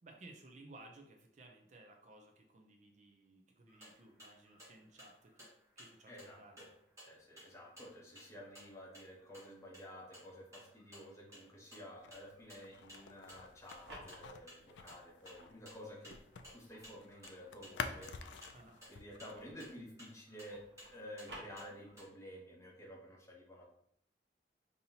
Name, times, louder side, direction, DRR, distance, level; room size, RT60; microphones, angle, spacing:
voice 1, 0.0-5.5 5.8-6.6 18.5-18.8, right 2 dB, 40° right, 3 dB, 0.5 m, -58 dB
sound 1, 3.7-22.1, equal, 15° right, 1.7 m, -59 dB
voice 2, 6.1-6.7 7.1-16.2 16.5-18.1 18.9-23.7, equal, 15° left, -2 dB, 0.8 m, -52 dB
sound 2, 12.0-16.5 16.8-19.5, left 5 dB, 85° left, 0.4 m, -48 dB
sound 3, 13.5-15.6 16.1-19.9 20.2-22.1, right 1 dB, 70° right, 1.1 m, -56 dB
5.4 x 2.7 x 2.8 m, 0.68 s
head